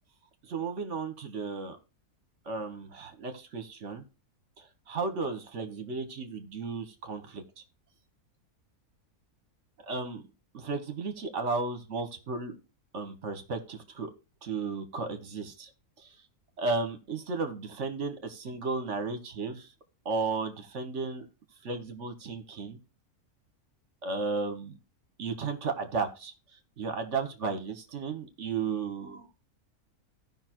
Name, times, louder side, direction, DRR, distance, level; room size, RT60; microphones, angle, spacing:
voice 1, 0.5-1.8 2.4-4.0 4.6-7.4 9.9-10.2 10.5-12.5 12.9-14.1 14.4-15.7 16.0-16.1 16.6-19.7 20.0-21.3 21.6-22.8 24.0-24.7 25.2-26.3 26.8-29.3, right 4 dB, 55° right, 8 dB, 1.5 m, -34 dB
16.0 x 5.6 x 3.0 m, 0.31 s
omnidirectional pair, 1.6 m